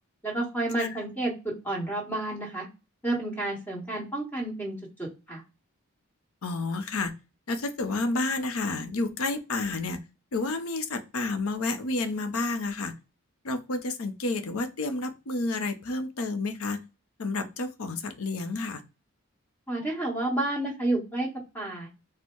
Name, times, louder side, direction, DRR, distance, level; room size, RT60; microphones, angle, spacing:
voice 1, 0.2-2.7 3.0-5.4 19.7-21.3 21.5-21.9, right 2 dB, 10° left, -2 dB, 1.4 m, -30 dB
voice 2, 6.4-7.1 7.5-10.0 10.3-12.9 13.4-16.8 17.2-18.8, left 3 dB, 85° left, 9 dB, 0.7 m, -30 dB
4.4 x 2.1 x 4.5 m, 0.30 s
head